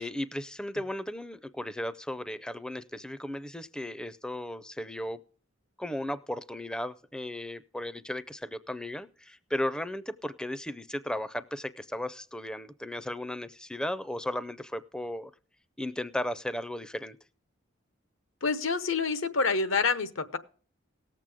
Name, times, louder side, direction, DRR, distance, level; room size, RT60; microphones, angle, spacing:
voice 1, 0.0-5.2 5.8-15.3 15.8-17.2, left 1 dB, 5° left, 14 dB, 0.4 m, -35 dB
voice 2, 18.4-20.4, left 4 dB, 90° left, 12 dB, 1.0 m, -27 dB
18.0 x 7.5 x 3.5 m, 0.42 s
head